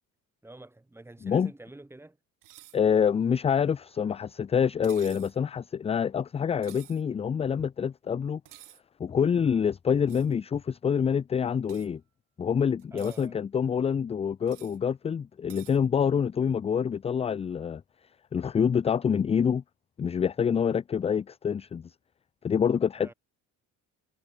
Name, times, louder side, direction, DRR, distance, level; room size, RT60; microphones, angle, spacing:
voice 1, 0.4-2.2 12.9-13.4 23.0-23.1, right 2 dB, 5° right, 3.4 m, -47 dB
voice 2, 1.2-1.5 2.7-8.4 9.0-12.0 12.4-17.8 18.3-19.6 20.0-21.9 22.4-23.1, left 7 dB, 20° left, 0.4 m, -26 dB
sound 1, 2.4-2.8 4.8-5.4 6.6-7.0 8.5-8.8 10.1-10.3 11.7-11.9 12.8-13.3 14.5-14.8 15.5-15.8, right 15 dB, 65° right, 2.7 m, -51 dB
cardioid pair, 175°, 35 cm